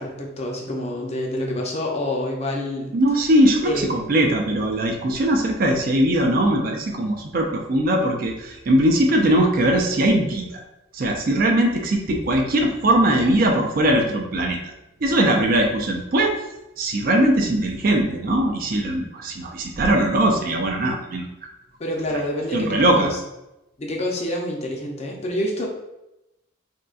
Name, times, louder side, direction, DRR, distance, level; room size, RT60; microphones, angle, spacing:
voice 1, 0.0-2.9 3.6-3.9 21.8-23.2 23.8-25.7, left 1 dB, 35° left, 0 dB, 0.5 m, -27 dB
voice 2, 2.9-10.6 10.9-14.6 15.0-16.4 16.8-21.3 22.5-23.1, right 1 dB, 45° right, 2 dB, 0.4 m, -20 dB
3.6 x 2.3 x 2.4 m, 0.90 s
head